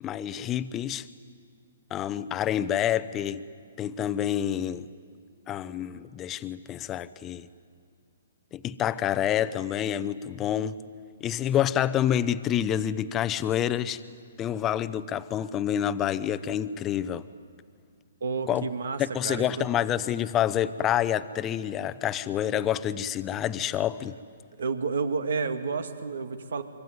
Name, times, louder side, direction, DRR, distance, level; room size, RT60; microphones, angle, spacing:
voice 1, 0.0-1.1 1.9-3.4 3.8-4.9 5.5-7.5 8.5-10.8 11.2-14.0 14.4-17.2 18.5-18.7 19.0-24.2, left 10 dB, 20° left, 14 dB, 0.8 m, -28 dB
voice 2, 18.2-19.0 19.2-19.7 24.6-26.6, right 5 dB, 75° right, 8 dB, 2.1 m, -30 dB
25.5 x 24.0 x 9.5 m, 2.1 s
hypercardioid pair, 145°, 0 cm